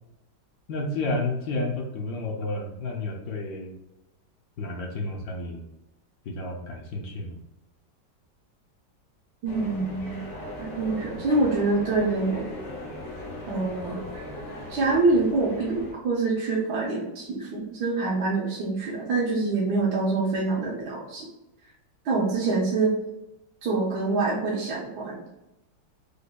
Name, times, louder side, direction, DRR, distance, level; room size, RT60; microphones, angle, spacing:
voice 1, 0.7-3.7 4.6-5.6 6.3-7.4, left 2 dB, 70° left, 1 dB, 0.9 m, -31 dB
voice 2, 9.4-10.2 10.6-12.5 13.5-14.1 14.7-21.3 22.0-23.0 23.6-25.2, right 3 dB, 70° right, -4 dB, 1.2 m, -25 dB
sound 1, 9.5-15.9, left 1 dB, 90° left, 2.1 m, -38 dB
5.0 x 2.1 x 2.2 m, 0.95 s
omnidirectional pair, 1.9 m